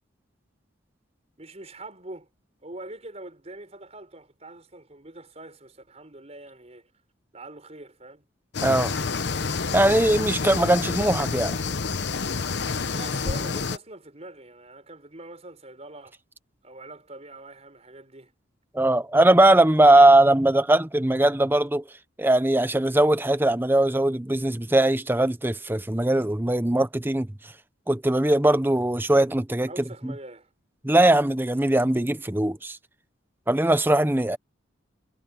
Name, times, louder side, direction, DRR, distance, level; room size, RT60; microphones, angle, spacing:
voice 1, 1.4-2.3 2.6-6.9 7.3-8.3 12.9-16.2 16.6-18.3 29.7-30.5, right 2 dB, 35° right, 5.0 m, -43 dB
sound 1, 8.5-13.8, left 4 dB, 60° left, 0.9 m, -28 dB
voice 2, 8.6-8.9 9.7-11.6 18.7-21.8 22.2-27.3 27.9-29.7 30.0-30.1 30.8-32.8 33.5-34.4, right 1 dB, 10° right, 0.7 m, -20 dB
head